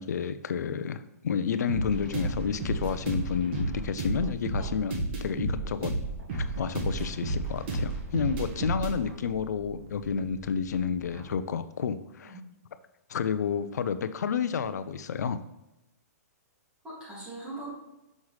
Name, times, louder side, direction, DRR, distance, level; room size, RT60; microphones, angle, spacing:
voice 1, 0.0-5.9 6.3-12.4 13.1-15.4, left 7 dB, 90° left, 12 dB, 0.4 m, -30 dB
sound 1, 1.7-11.3, right 2 dB, 40° right, 1.3 m, -33 dB
voice 2, 16.8-17.7, right 2 dB, 10° right, -6 dB, 2.2 m, -41 dB
6.3 x 5.5 x 3.2 m, 0.95 s
hypercardioid pair, 160°, 9 cm